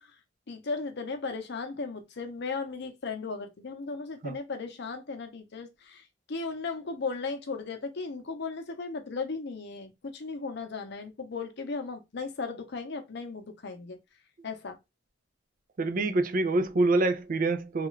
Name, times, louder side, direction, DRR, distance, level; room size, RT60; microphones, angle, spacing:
voice 1, 0.5-6.0 6.3-14.0 14.4-14.8, left 4 dB, 60° left, 0.7 m, -36 dB
voice 2, 15.8-17.9, right 2 dB, 45° right, 0.4 m, -26 dB
3.4 x 2.4 x 3.1 m
head